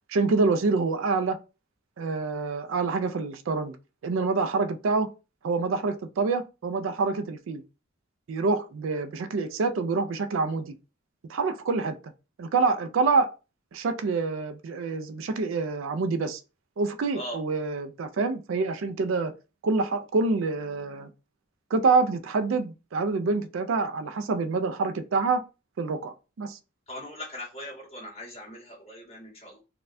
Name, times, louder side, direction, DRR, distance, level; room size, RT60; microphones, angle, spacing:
voice 1, 0.1-1.4 2.0-3.8 4.0-5.1 5.4-7.6 8.3-10.8 11.3-12.0 12.4-13.3 13.7-16.4 16.8-19.3 19.6-21.1 21.7-25.4 25.8-26.6, right 4 dB, 70° right, 0.4 m, -26 dB
voice 2, 26.9-29.6, left 1 dB, 30° left, 1.8 m, -40 dB
4.0 x 2.2 x 2.6 m
head